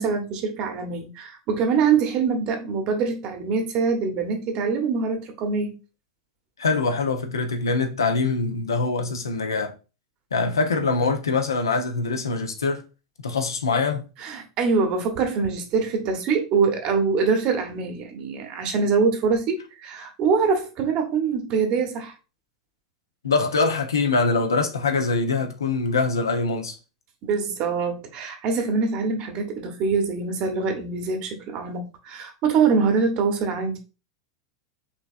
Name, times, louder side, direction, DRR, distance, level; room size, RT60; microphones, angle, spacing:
voice 1, 0.0-5.8 14.2-22.1 27.2-33.8, right 5 dB, 45° right, 1.2 m, -24 dB
voice 2, 6.6-9.7 10.3-12.8 13.2-14.0 23.2-26.7, left 4 dB, 75° left, 0.9 m, -23 dB
5.3 x 3.4 x 2.4 m
figure-of-eight pair, 85°, 2 cm